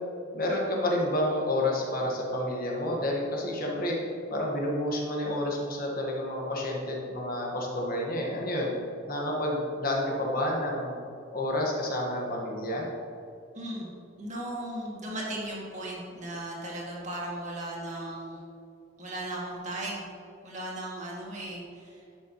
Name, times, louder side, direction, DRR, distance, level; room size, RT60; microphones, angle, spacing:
voice 1, 0.3-4.0 4.3-8.7 9.1-11.0 11.3-12.9, left 1 dB, 50° left, -2 dB, 1.4 m, -29 dB
voice 2, 13.5-13.9 14.2-18.4 19.0-20.1 20.4-22.0, right 1 dB, 40° right, -4 dB, 1.9 m, -36 dB
11.0 x 6.8 x 3.0 m, 2.6 s
head